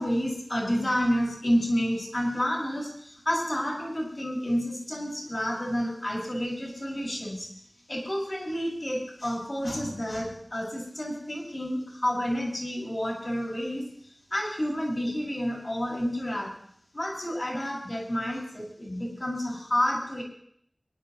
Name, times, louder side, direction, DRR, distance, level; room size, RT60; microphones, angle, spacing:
voice 1, 0.0-7.5 7.9-13.9 14.3-16.6 16.9-20.2, equal, 50° left, -2 dB, 6.0 m, -29 dB
26.5 x 11.0 x 3.1 m, 0.66 s
wide cardioid pair, 45°, 0 cm